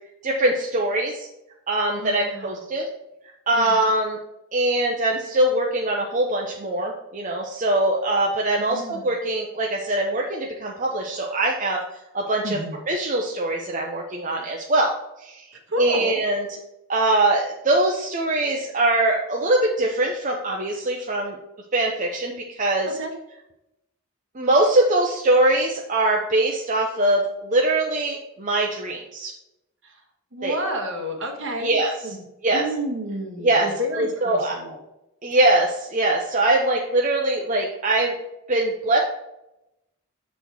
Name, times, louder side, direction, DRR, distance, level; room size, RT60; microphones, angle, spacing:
voice 1, 0.2-1.3 1.7-2.9 3.5-4.2 4.5-11.8 12.1-12.6 12.9-14.9 15.2-15.4 15.8-16.5 16.9-21.4 21.7-22.9 24.3-29.3 30.4-30.6 31.6-31.9 32.4-32.6 33.4-33.7 34.0-34.6 35.2-38.2 38.5-39.0, right 2 dB, 35° right, 0 dB, 0.7 m, -22 dB
voice 2, 1.9-2.6 3.5-3.8 8.6-9.1 12.4-12.7 15.7-16.1 23.0-23.1 29.8-30.0 30.3-31.7 32.0-32.2 32.5-34.8, equal, 60° right, 2 dB, 1.5 m, -30 dB
6.9 x 4.2 x 4.6 m, 0.89 s
head